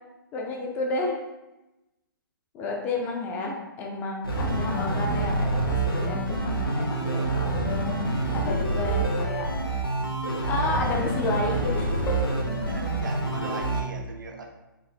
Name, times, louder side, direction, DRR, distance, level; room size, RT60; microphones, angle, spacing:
voice 1, 0.3-1.2 2.5-9.5 10.4-12.2, left 2 dB, 15° left, 0 dB, 0.4 m, -31 dB
sound 1, 4.2-13.8, right 2 dB, 85° left, 1.0 m, -27 dB
voice 2, 12.7-14.5, right 3 dB, 60° right, 3 dB, 0.7 m, -39 dB
4.3 x 3.1 x 2.7 m, 0.99 s
figure-of-eight pair, 125°, 12 cm